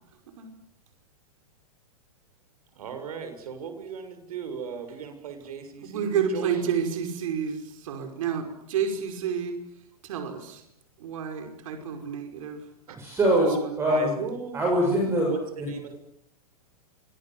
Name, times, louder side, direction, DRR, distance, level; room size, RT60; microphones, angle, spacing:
voice 1, 2.7-6.6 12.9-13.0 13.9-14.6 14.9-16.0, right 6 dB, 80° right, 6.8 m, -37 dB
voice 2, 5.8-9.5 10.0-10.6 11.0-12.6 13.4-13.8, right 7 dB, 60° right, 5.5 m, -30 dB
voice 3, 13.0-14.1 14.5-15.3 15.6-15.7, right 1 dB, 15° right, 7.2 m, -23 dB
28.5 x 26.0 x 7.8 m
supercardioid pair, 160°, 19 cm